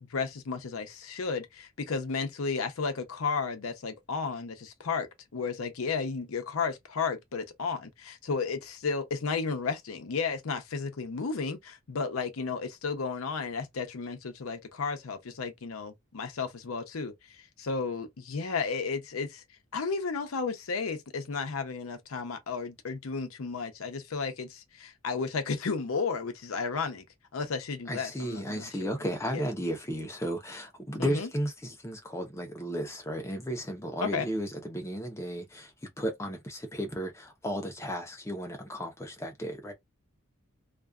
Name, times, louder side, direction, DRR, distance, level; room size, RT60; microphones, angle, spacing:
voice 1, 0.0-19.4 19.7-27.0 27.3-28.9 29.3-29.5 31.0-31.3 34.0-34.3, left 5 dB, 80° left, 0.6 m, -33 dB
voice 2, 27.9-39.7, equal, 15° left, 0.6 m, -34 dB
2.5 x 2.3 x 2.3 m
head